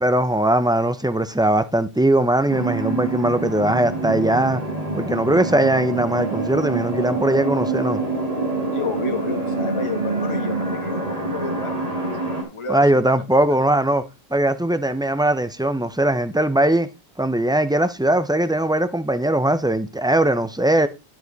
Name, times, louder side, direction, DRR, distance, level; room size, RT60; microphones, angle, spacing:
voice 1, 0.0-4.6 4.9-8.0 12.7-14.0 14.3-16.9 17.2-20.9, right 1 dB, 5° right, 0.4 m, -20 dB
sound 1, 2.5-12.4, right 3 dB, 35° right, 2.1 m, -26 dB
voice 2, 8.7-13.1 13.5-13.7, left 4 dB, 30° left, 1.3 m, -31 dB
10.5 x 7.6 x 4.0 m
omnidirectional pair, 1.1 m